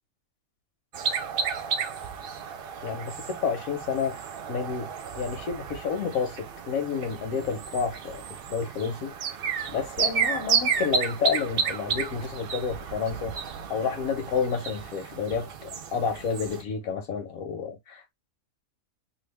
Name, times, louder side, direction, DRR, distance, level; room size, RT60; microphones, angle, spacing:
sound 1, 0.9-16.6, right 6 dB, 60° right, 0.6 m, -32 dB
voice 1, 2.8-4.2 4.5-9.1 9.7-13.4 13.7-17.8, left 6 dB, 85° left, 1.4 m, -30 dB
2.9 x 2.4 x 3.3 m
omnidirectional pair, 1.4 m